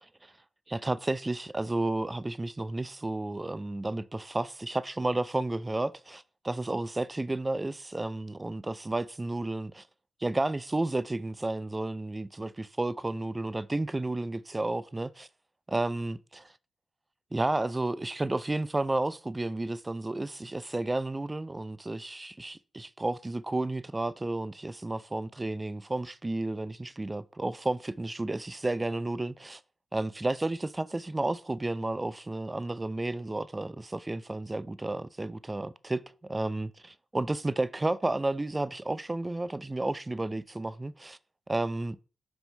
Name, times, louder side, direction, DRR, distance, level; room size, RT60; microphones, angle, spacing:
voice 1, 0.7-9.8 10.2-15.3 15.7-16.2 17.3-29.6 29.9-41.2 41.5-42.0, right 2 dB, 25° right, 0.5 m, -32 dB
5.7 x 3.7 x 5.4 m
supercardioid pair, 45°, 0 cm